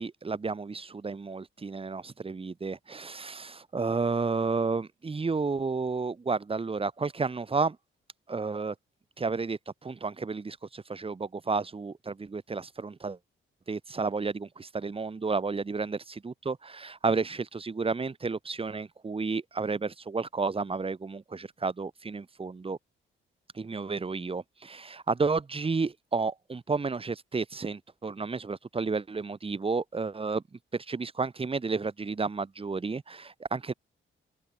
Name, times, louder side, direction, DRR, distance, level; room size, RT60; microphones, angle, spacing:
voice 1, 0.0-7.8 8.3-8.7 9.2-13.2 13.7-16.0 16.2-22.8 23.5-30.4 30.7-33.7, right 4 dB, 25° right, 2.4 m, -31 dB
open air
wide cardioid pair, 130°, 21 cm